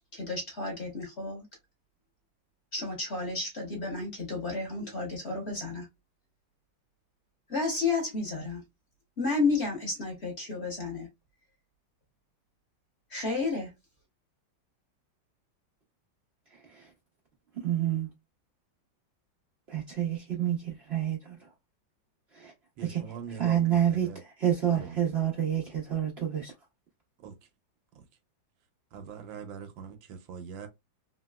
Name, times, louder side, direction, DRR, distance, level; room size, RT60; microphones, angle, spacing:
voice 1, 0.1-1.4 2.7-5.9 7.5-8.6 9.2-11.1 13.1-13.7, left 3 dB, 45° left, 0.9 m, -31 dB
voice 2, 17.6-18.1 19.7-21.4 22.3-22.5 22.8-23.0 23.4-26.5, right 10 dB, 65° right, 0.6 m, -28 dB
voice 3, 22.8-24.2 24.7-25.0 27.2-27.4 27.9-28.0 28.9-30.7, right 7 dB, 90° right, 1.5 m, -42 dB
3.2 x 2.9 x 2.2 m
omnidirectional pair, 2.1 m